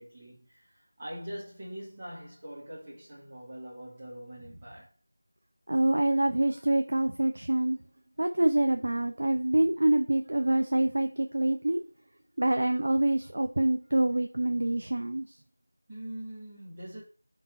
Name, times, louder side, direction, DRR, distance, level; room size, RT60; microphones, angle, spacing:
voice 1, 0.0-4.9 11.0-11.1 11.4-11.5 15.9-17.0, right 1 dB, 20° right, 2.3 m, -43 dB
voice 2, 5.7-7.8 8.2-11.8 12.4-15.3, right 1 dB, 45° right, 0.7 m, -26 dB
5.5 x 4.0 x 4.6 m
figure-of-eight pair, 170°, 0 cm